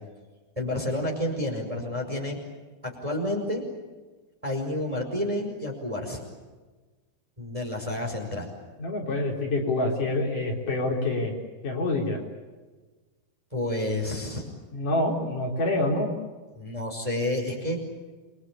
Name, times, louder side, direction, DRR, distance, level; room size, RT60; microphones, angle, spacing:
voice 1, 0.5-2.4 2.8-3.6 4.4-6.2 7.4-8.5 13.5-14.4 16.5-17.8, left 1 dB, 10° right, 1 dB, 5.0 m, -30 dB
voice 2, 8.8-11.3 11.6-12.2 14.7-16.1, left 2 dB, 50° left, 0 dB, 5.2 m, -26 dB
29.0 x 23.5 x 8.7 m, 1.3 s
omnidirectional pair, 4.7 m